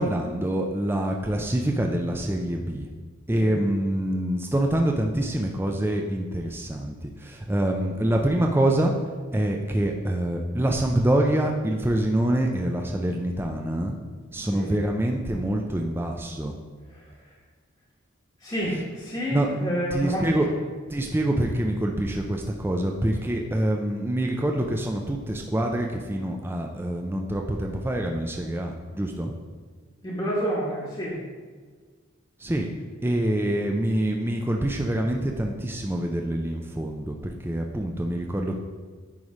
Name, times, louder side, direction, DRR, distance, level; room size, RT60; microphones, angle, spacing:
voice 1, 0.0-2.9 3.3-8.9 9.3-14.0 14.3-16.6 19.3-20.5 20.9-29.3 32.4-32.7 33.0-38.5, right 1 dB, 10° right, 1 dB, 0.4 m, -26 dB
voice 2, 14.5-14.8 16.9-17.1 18.4-20.6 30.0-31.2, equal, 20° left, -6 dB, 1.1 m, -29 dB
9.4 x 3.2 x 4.9 m, 1.5 s
head